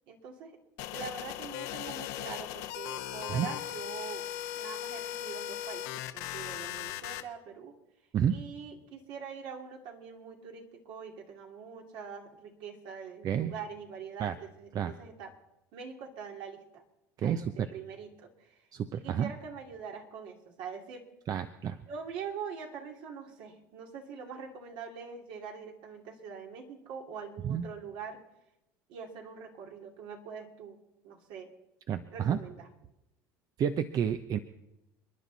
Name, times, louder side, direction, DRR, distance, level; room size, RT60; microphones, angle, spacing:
voice 1, 0.1-0.6 0.9-4.3 4.5-7.8 8.3-15.3 15.7-16.8 17.2-21.1 21.7-28.2 28.9-31.5 32.1-32.7, right 6 dB, 65° right, 2 dB, 2.8 m, -44 dB
sound 1, 0.8-7.2, left 12 dB, 75° left, 1.2 m, -38 dB
voice 2, 17.2-17.5 18.7-19.3 21.3-21.8 27.4-27.6 31.9-32.4 33.6-34.4, right 8 dB, 45° right, 10 dB, 0.8 m, -30 dB
29.5 x 10.5 x 4.1 m, 0.91 s
supercardioid pair, 100°, 9 cm